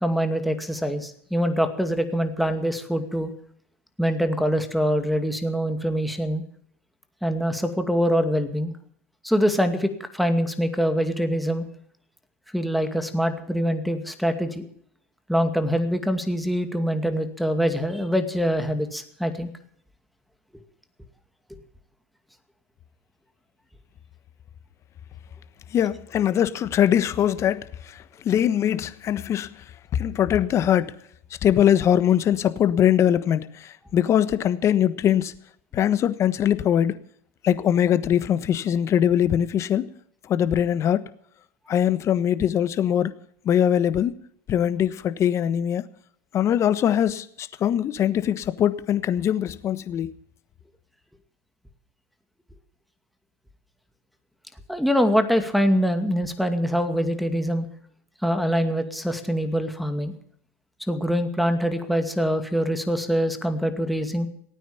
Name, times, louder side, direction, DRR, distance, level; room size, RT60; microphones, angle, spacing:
voice 1, 0.0-3.3 4.0-6.4 7.2-8.7 9.2-11.7 12.5-14.7 15.3-19.5 54.7-57.7 58.2-60.1 60.9-64.3, equal, ahead, 2.3 m, -24 dB
voice 2, 25.7-29.6 29.9-30.9 31.4-35.3 35.7-37.0 37.4-39.9 40.2-41.0 41.7-43.1 43.4-44.1 44.5-45.8 46.3-50.1, left 10 dB, 40° left, 1.3 m, -22 dB
18.0 x 9.3 x 7.2 m
hypercardioid pair, 100°, 8 cm